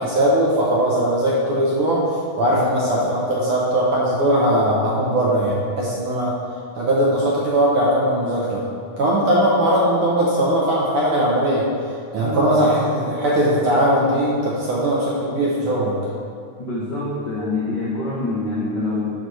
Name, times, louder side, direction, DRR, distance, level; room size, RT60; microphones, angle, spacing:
voice 1, 0.0-2.0 2.4-6.3 6.8-8.6 9.0-11.7 12.1-15.9, right 1 dB, 70° right, -5 dB, 1.4 m, -19 dB
voice 2, 16.6-19.1, left 2 dB, 90° left, -6 dB, 0.9 m, -25 dB
12.0 x 4.2 x 3.2 m, 2.4 s
omnidirectional pair, 3.4 m